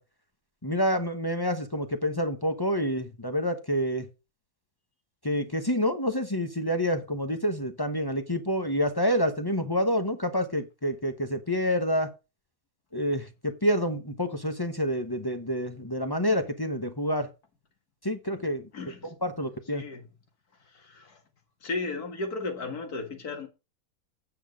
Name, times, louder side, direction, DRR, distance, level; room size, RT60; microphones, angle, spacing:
voice 1, 0.6-4.1 5.2-12.1 12.9-17.3 18.0-18.7 19.2-19.8, equal, 20° left, 0.8 m, -28 dB
voice 2, 18.7-19.1 19.7-20.1 20.6-21.2 21.6-23.5, left 3 dB, 90° left, 2.4 m, -35 dB
8.9 x 7.2 x 5.1 m
omnidirectional pair, 1.6 m